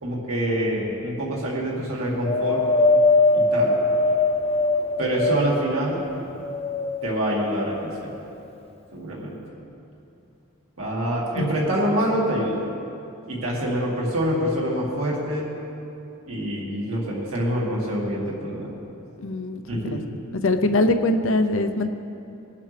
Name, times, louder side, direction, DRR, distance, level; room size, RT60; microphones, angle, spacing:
voice 1, 0.0-2.6 3.3-3.7 5.0-6.0 7.0-8.1 8.9-9.3 10.8-12.6 13.3-15.4 16.3-18.7 19.7-19.9, equal, 75° right, -4 dB, 2.2 m, -25 dB
Wind, 2.2-5.8 6.3-7.4 8.1-8.2, left 2 dB, 25° left, 0.4 m, -21 dB
voice 2, 19.2-20.0 20.3-21.9, left 2 dB, 65° left, 7 dB, 0.7 m, -23 dB
20.5 x 8.4 x 3.4 m, 2.8 s
head